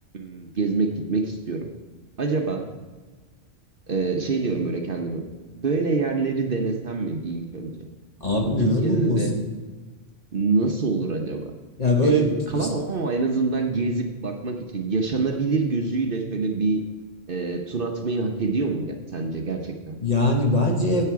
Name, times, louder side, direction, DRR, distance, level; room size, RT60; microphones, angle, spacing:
voice 1, 0.1-1.7 2.2-2.7 3.9-5.2 5.5-7.7 8.6-9.3 10.3-11.5 12.0-16.8 17.3-20.0, right 3 dB, 50° right, 4 dB, 1.0 m, -26 dB
voice 2, 8.2-9.4 11.8-12.7 20.0-21.0, left 1 dB, 35° left, 2 dB, 1.3 m, -21 dB
10.0 x 8.4 x 4.7 m, 1.3 s
omnidirectional pair, 1.3 m